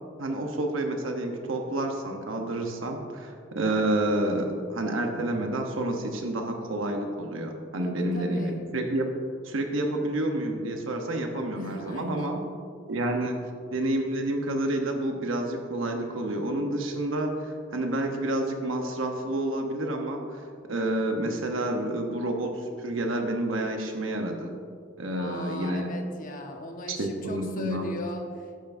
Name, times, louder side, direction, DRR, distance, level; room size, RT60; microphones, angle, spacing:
voice 1, 0.2-9.1 9.4-12.4 12.9-20.4 20.7-24.5 25.0-25.9 26.9-27.9, right 1 dB, 80° right, 3 dB, 0.9 m, -29 dB
voice 2, 7.8-8.6 11.5-12.3 25.0-28.6, left 1 dB, 45° left, 2 dB, 1.1 m, -38 dB
15.0 x 6.9 x 2.6 m, 2.2 s
head